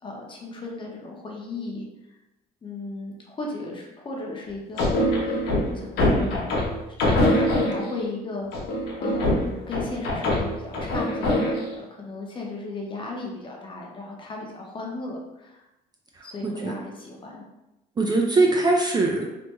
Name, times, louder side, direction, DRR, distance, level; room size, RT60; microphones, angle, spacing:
voice 1, 0.0-1.8 2.6-5.4 5.7-6.6 7.0-8.5 9.0-15.6 16.2-17.4, left 2 dB, 30° left, -1 dB, 0.7 m, -35 dB
sound 1, 4.8-8.0 8.5-11.8, left 1 dB, 75° left, 0.8 m, -24 dB
voice 2, 16.1-16.8 18.0-19.3, right 2 dB, 25° right, 0 dB, 0.4 m, -22 dB
3.4 x 2.1 x 2.9 m, 0.94 s
cardioid pair, 110°, 17 cm